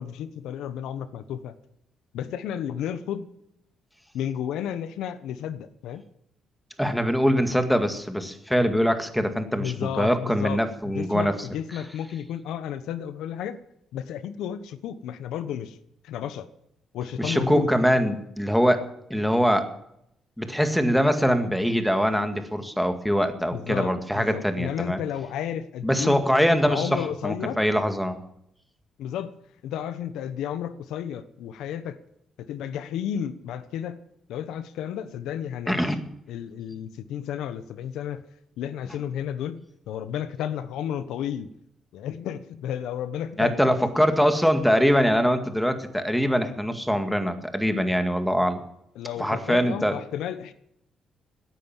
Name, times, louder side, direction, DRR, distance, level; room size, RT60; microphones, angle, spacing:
voice 1, 0.0-1.5 2.1-3.3 4.1-6.0 9.6-13.6 13.9-15.8 16.0-16.5 16.9-17.7 23.5-26.2 26.6-27.6 29.0-29.4 29.6-32.0 32.4-34.0 34.3-35.9 36.3-38.2 38.6-41.5 41.9-43.7 48.9-50.5, left 9 dB, 85° left, 13 dB, 1.0 m, -32 dB
voice 2, 6.8-11.3 17.2-18.8 19.1-19.7 20.4-25.0 25.8-28.2 35.7-36.0 43.4-48.6 49.2-50.0, equal, ahead, 7 dB, 2.1 m, -23 dB
17.0 x 10.0 x 7.4 m, 0.76 s
cardioid pair, 90°, 0 cm